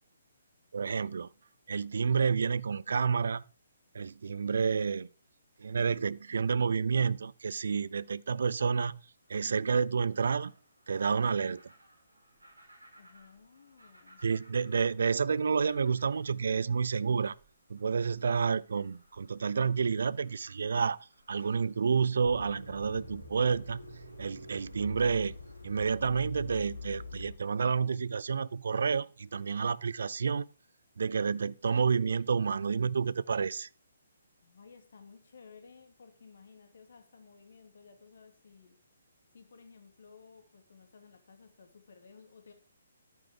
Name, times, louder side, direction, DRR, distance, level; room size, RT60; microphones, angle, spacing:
voice 1, 0.7-1.3 1.7-3.4 3.9-5.1 5.6-9.0 9.3-10.5 10.9-11.6 14.2-17.4 17.7-23.9 24.2-25.3 25.6-30.4 31.0-33.7, right 5 dB, 55° right, 0.5 m, -29 dB
sound 1, 9.1-26.9, right 1 dB, 80° right, 4.5 m, -63 dB
voice 2, 13.0-14.2 34.4-38.8 39.3-42.5, left 5 dB, 55° left, 2.7 m, -56 dB
sound 2, 22.2-27.3, left 2 dB, 80° left, 3.6 m, -44 dB
11.0 x 9.2 x 5.0 m
figure-of-eight pair, 130°, 0 cm